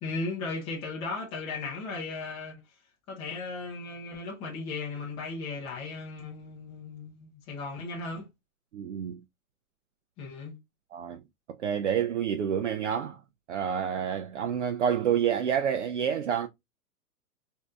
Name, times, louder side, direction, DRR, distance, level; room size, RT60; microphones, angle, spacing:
voice 1, 0.0-2.6 3.1-8.3 10.2-10.5, left 3 dB, 10° left, 0.5 m, -36 dB
voice 2, 8.7-9.2 10.9-11.2 11.6-13.2 13.5-16.5, right 8 dB, 50° right, 0.5 m, -28 dB
5.1 x 2.6 x 2.3 m
figure-of-eight pair, 115°, 46 cm